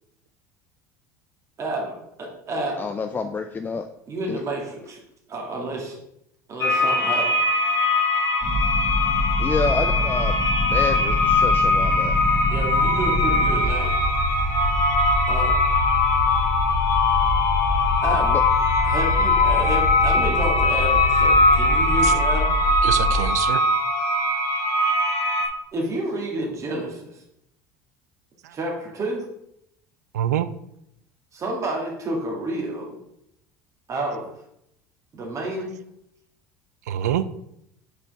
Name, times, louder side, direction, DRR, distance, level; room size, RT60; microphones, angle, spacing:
voice 1, 1.6-2.9 4.1-5.0 5.3-6.0 6.5-7.4 12.5-14.0 15.3-15.5 18.0-18.4 18.8-22.6 25.7-27.2 28.5-29.3 31.3-33.0 33.9-34.3 35.1-35.7, right 1 dB, 35° right, -1 dB, 1.9 m, -29 dB
voice 2, 2.8-3.9 4.3-4.4 9.4-10.4 10.6-12.2 18.2-18.4, left 4 dB, 20° left, 7 dB, 0.4 m, -28 dB
sound 1, 6.6-25.5, left 2 dB, 55° left, 1.4 m, -21 dB
sound 2, 8.4-23.3, left 1 dB, ahead, 1.6 m, -26 dB
voice 3, 22.8-23.7 28.4-28.5 30.1-30.5 34.1-34.2 36.9-37.3, right 10 dB, 80° right, 14 dB, 0.4 m, -25 dB
6.8 x 4.5 x 3.5 m, 0.77 s
hypercardioid pair, 75°, 9 cm